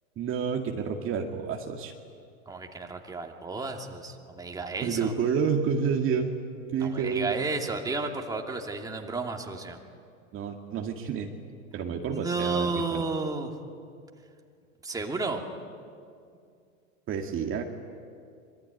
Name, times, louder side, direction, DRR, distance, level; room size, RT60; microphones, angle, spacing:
voice 1, 0.2-1.9 4.8-6.3 6.7-7.4 10.3-11.3 11.7-13.0 17.1-17.6, right 6 dB, 30° right, 2 dB, 2.1 m, -29 dB
voice 2, 2.5-5.1 6.9-9.8 12.1-13.5 14.8-15.4, right 3 dB, 10° right, 2 dB, 2.7 m, -32 dB
26.0 x 23.0 x 9.6 m, 2.3 s
hypercardioid pair, 115°, 42 cm